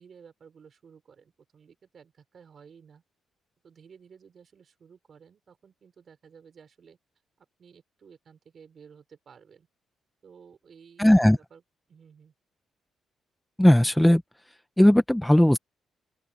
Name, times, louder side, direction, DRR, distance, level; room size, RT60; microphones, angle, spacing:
voice 1, 0.0-3.0 3.6-7.0 7.4-9.7 10.2-11.6 11.9-12.3, right 6 dB, 45° right, 4.8 m, -54 dB
voice 2, 11.0-11.4 13.6-14.2 14.8-15.6, left 1 dB, 5° left, 0.6 m, -17 dB
open air
cardioid pair, 140°, 0 cm